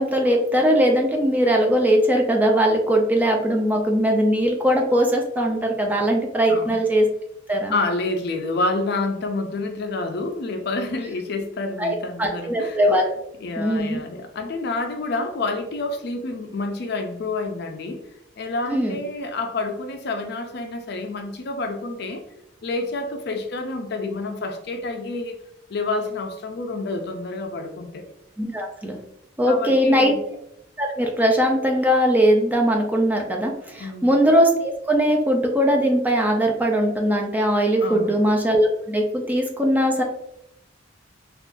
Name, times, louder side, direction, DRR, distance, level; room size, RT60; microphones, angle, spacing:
voice 1, 0.0-7.1 7.5-7.7 11.8-13.1 13.6-14.0 18.7-19.0 28.4-29.0 29.4-30.1 30.8-40.0, equal, 10° right, 1 dB, 0.4 m, -20 dB
voice 2, 6.5-6.8 7.7-12.8 13.4-18.0 18.4-22.2 22.6-25.4 25.7-28.1 29.5-30.2 33.8-34.1 37.8-38.2, left 2 dB, 55° left, 6 dB, 0.4 m, -28 dB
3.6 x 2.4 x 2.5 m, 0.77 s
head